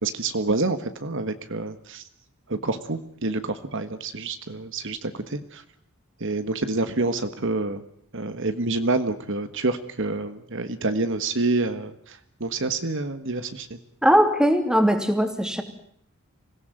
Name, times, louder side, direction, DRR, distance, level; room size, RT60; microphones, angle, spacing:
voice 1, 0.0-2.0 2.5-5.6 6.2-7.8 8.1-13.7, right 2 dB, 60° right, 10 dB, 1.6 m, -27 dB
voice 2, 14.0-15.6, equal, 5° right, 7 dB, 2.8 m, -20 dB
25.5 x 17.5 x 9.2 m, 0.68 s
head